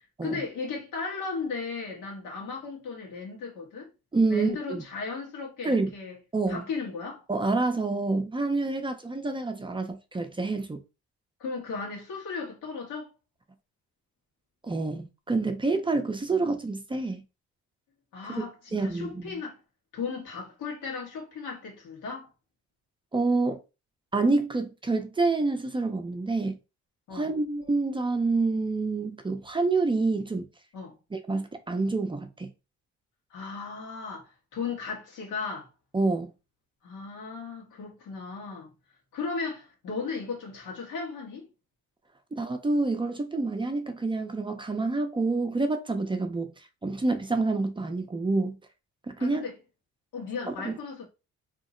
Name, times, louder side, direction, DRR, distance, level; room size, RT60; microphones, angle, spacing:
voice 1, 0.2-3.9 4.3-6.2 6.5-7.2 11.4-13.1 18.1-19.6 19.9-22.3 27.1-27.4 30.7-31.0 33.3-35.7 36.8-38.7 39.1-41.5 49.2-49.5 50.1-51.0, left 4 dB, 90° left, 1.3 m, -36 dB
voice 2, 4.1-4.8 5.6-5.9 6.3-6.6 7.3-10.8 14.6-17.2 18.7-19.4 23.1-23.6 24.1-26.6 27.1-30.5 31.1-32.5 35.9-36.3 42.4-46.5 46.8-48.6 49.1-49.4 50.5-50.7, right 3 dB, 15° right, 0.5 m, -27 dB
2.9 x 2.0 x 3.7 m
cardioid pair, 90°, 30 cm